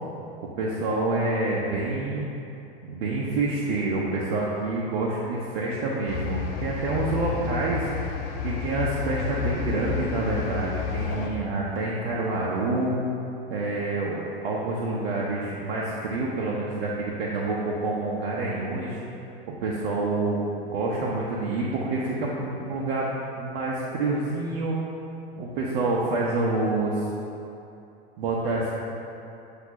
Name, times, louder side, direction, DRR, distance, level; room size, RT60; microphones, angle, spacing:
voice 1, 0.6-2.3 2.8-7.9 8.4-13.0 13.5-19.0 19.5-23.1 23.4-24.8 25.4-27.1 28.2-28.7, right 2 dB, 65° right, -4 dB, 0.9 m, -27 dB
sound 1, 6.1-11.3, left 6 dB, 55° left, 1.1 m, -31 dB
7.9 x 2.9 x 5.9 m, 2.9 s
hypercardioid pair, 95°, 30 cm